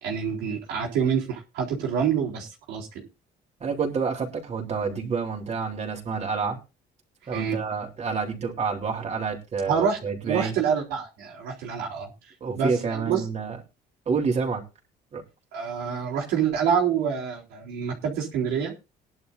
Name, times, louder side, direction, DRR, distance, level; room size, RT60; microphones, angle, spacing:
voice 1, 0.0-3.0 7.3-7.6 9.7-10.0 10.2-12.1 12.6-13.3 15.5-18.7, right 7 dB, 85° right, -3 dB, 4.0 m, -27 dB
voice 2, 3.6-6.6 7.3-10.5 12.4-13.6 14.1-14.6 15.1-15.2, right 5 dB, 40° right, 0 dB, 3.8 m, -28 dB
19.5 x 11.0 x 2.7 m, 0.29 s
cardioid pair, 110°, 17 cm